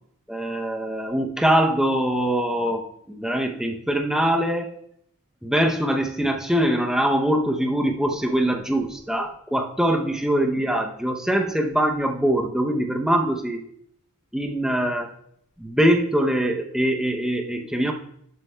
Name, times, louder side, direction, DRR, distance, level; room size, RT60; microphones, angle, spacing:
voice 1, 0.3-4.7 5.4-13.6 14.3-15.1 15.6-17.9, right 1 dB, 5° right, 2 dB, 0.6 m, -23 dB
12.0 x 7.9 x 2.2 m, 0.71 s
head